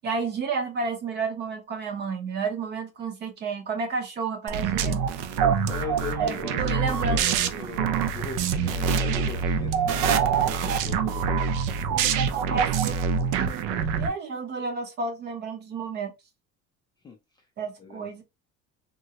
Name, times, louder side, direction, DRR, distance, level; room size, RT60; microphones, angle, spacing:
voice 1, 0.0-5.0 6.2-7.2 11.9-13.7 14.0-16.1 17.6-18.2, right 4 dB, 35° right, 0.7 m, -31 dB
sound 1, 4.5-14.1, right 6 dB, 85° right, 0.5 m, -25 dB
voice 2, 5.7-11.5 17.0-17.2 17.8-18.0, left 5 dB, 15° left, 0.3 m, -39 dB
3.7 x 2.0 x 2.8 m
cardioid pair, 170°, 30 cm